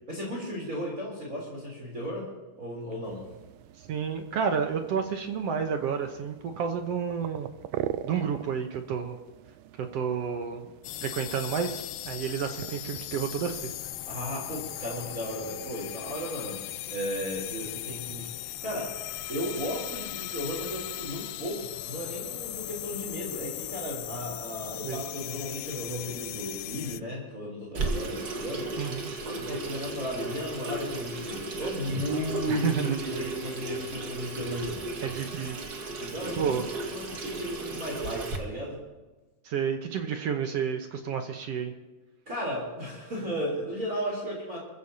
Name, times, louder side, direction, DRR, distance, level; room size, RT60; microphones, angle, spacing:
voice 1, 0.1-2.3 2.6-3.2 14.1-16.6 16.9-19.0 19.3-28.9 29.3-34.8 36.0-36.5 36.9-38.8 42.3-44.6, equal, 25° right, -4 dB, 3.8 m, -35 dB
sound 1, 3.0-15.9, right 11 dB, 80° right, 1.7 m, -43 dB
voice 2, 3.9-7.5 8.1-9.2 9.9-10.7 11.0-13.7 24.8-25.0 28.8-29.1 31.9-32.0 32.5-33.0 35.0-35.6 36.4-36.6 39.5-41.7, right 7 dB, 65° right, 5 dB, 1.8 m, -30 dB
sound 2, 10.8-27.0, left 15 dB, 80° left, 1.9 m, -38 dB
Water tap faucet / Sink (filling or washing), 27.7-38.4, right 2 dB, 40° right, 1.6 m, -35 dB
26.5 x 15.0 x 2.8 m, 1.2 s
omnidirectional pair, 3.7 m